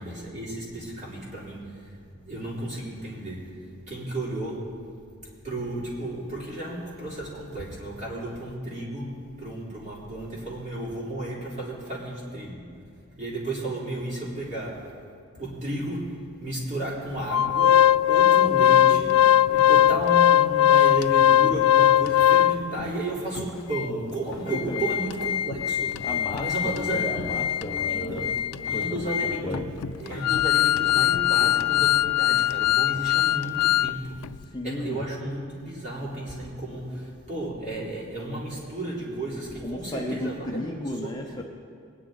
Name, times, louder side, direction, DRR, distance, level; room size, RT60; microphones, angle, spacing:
voice 1, 0.0-4.8 5.4-12.7 13.2-15.0 15.3-27.5 27.8-28.4 28.6-29.6 30.0-34.3 34.6-41.3, right 1 dB, 35° right, -6 dB, 3.6 m, -33 dB
Organ, 17.3-22.8 23.4-23.5 23.7-23.9 24.3-33.9 34.2-34.4, left 11 dB, 90° left, 0.3 m, -21 dB
voice 2, 24.2-24.9 26.0-29.9 34.5-35.0 39.6-41.4, left 1 dB, 20° left, 0 dB, 0.7 m, -34 dB
21.0 x 10.0 x 3.9 m, 2.4 s
head